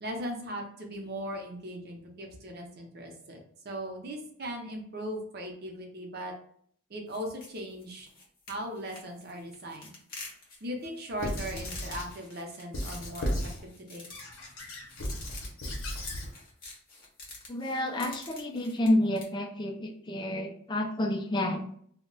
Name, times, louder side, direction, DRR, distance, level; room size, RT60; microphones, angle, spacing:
voice 1, 0.0-6.3 6.9-8.1 8.5-9.9 10.6-13.3 13.6-14.1, equal, 45° right, 1 dB, 0.6 m, -38 dB
sound 1, 7.1-19.3, left 2 dB, 40° left, 0.8 m, -47 dB
Squeak / Writing, 11.2-12.1 12.7-13.6 14.1-16.3, equal, 70° left, 0.7 m, -35 dB
voice 2, 17.5-21.6, left 1 dB, 20° left, 3 dB, 0.3 m, -29 dB
2.2 x 2.1 x 3.8 m, 0.63 s
head